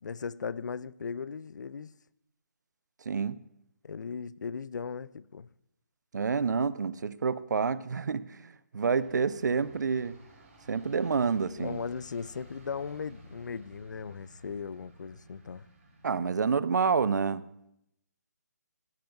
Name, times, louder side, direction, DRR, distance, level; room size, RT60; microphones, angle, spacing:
voice 1, 0.0-1.9 3.8-5.5 11.6-15.7, left 6 dB, 90° left, 0.4 m, -37 dB
voice 2, 3.1-3.4 6.1-10.2 10.7-11.8 16.0-17.4, right 5 dB, 75° right, 0.5 m, -28 dB
sound 1, 8.9-16.3, equal, 45° right, 3.2 m, -54 dB
15.5 x 8.9 x 2.3 m
hypercardioid pair, 170°, 10 cm